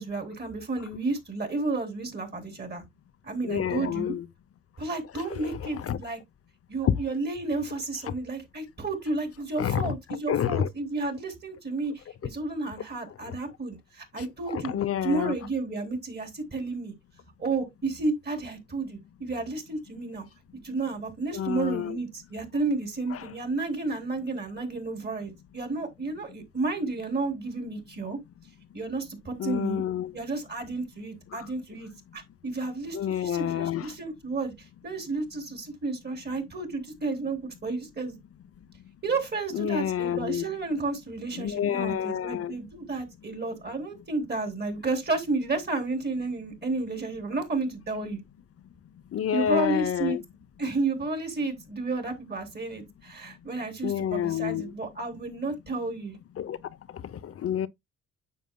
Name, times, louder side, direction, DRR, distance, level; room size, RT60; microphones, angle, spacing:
voice 1, 0.0-2.8 3.2-4.1 4.8-6.2 6.7-14.7 15.0-16.9 17.4-20.3 20.6-28.2 28.7-29.8 30.1-38.2 39.0-48.2 49.3-50.2 50.6-56.2, right 3 dB, 35° right, 3.6 m, -32 dB
voice 2, 3.4-4.3 5.7-6.0 6.8-7.0 9.6-9.9 10.3-10.7 14.5-15.3 21.3-22.0 23.1-23.3 29.4-30.1 31.3-31.5 32.9-33.9 39.5-40.4 41.4-42.5 49.1-50.2 53.8-54.7 56.4-56.6 56.9-57.7, left 9 dB, 50° left, 0.8 m, -28 dB
9.4 x 7.2 x 2.3 m
cardioid pair, 90°, 30 cm